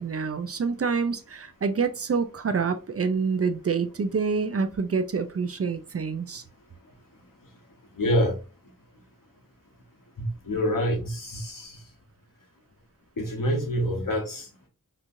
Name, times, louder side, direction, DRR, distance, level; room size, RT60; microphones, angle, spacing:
voice 1, 0.0-6.4, right 5 dB, 45° right, 9 dB, 0.4 m, -27 dB
voice 2, 8.0-8.3 10.2-11.7 13.2-14.4, equal, 80° left, 1 dB, 0.9 m, -26 dB
3.0 x 2.4 x 2.5 m, 0.33 s
wide cardioid pair, 50°, 33 cm